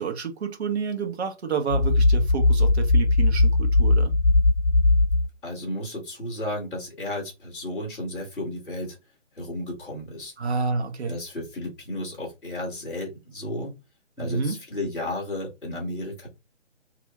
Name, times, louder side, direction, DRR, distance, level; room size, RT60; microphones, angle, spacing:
voice 1, 0.0-4.1 10.4-11.2 14.2-14.6, right 5 dB, 60° right, 1.1 m, -29 dB
sound 1, 1.7-5.2, left 2 dB, 45° left, 0.7 m, -19 dB
voice 2, 5.4-9.0 9.3-10.3 11.0-13.7 14.2-16.3, left 1 dB, ahead, 0.6 m, -33 dB
2.9 x 2.5 x 2.7 m
figure-of-eight pair, 145°, 36 cm